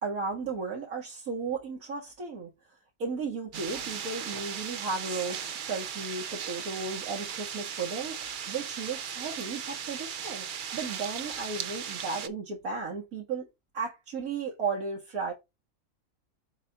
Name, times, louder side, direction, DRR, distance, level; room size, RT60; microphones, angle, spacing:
voice 1, 0.0-2.5 3.0-10.5 10.7-13.5 13.7-15.3, right 4 dB, 75° right, 2.0 m, -35 dB
sound 1, 3.5-12.3, right 8 dB, 60° right, 0.5 m, -37 dB
7.4 x 2.6 x 5.6 m
omnidirectional pair, 1.5 m